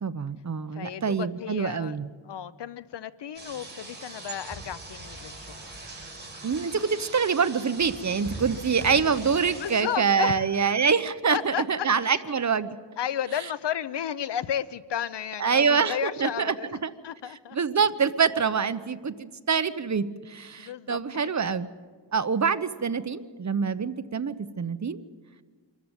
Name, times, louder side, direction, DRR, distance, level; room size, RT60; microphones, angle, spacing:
voice 1, 0.0-2.1 6.4-12.8 15.4-16.6 16.8-16.9 17.5-21.7 22.1-25.0, right 6 dB, 40° right, 12 dB, 0.9 m, -25 dB
voice 2, 0.8-1.9 2.3-5.5 9.5-10.9 11.3-12.2 13.0-17.6 20.6-21.0, left 9 dB, 75° left, 16 dB, 0.8 m, -33 dB
sound 1, 3.3-9.8, right 2 dB, 25° right, 6.7 m, -41 dB
25.5 x 13.5 x 9.0 m, 1.5 s
wide cardioid pair, 95°, 43 cm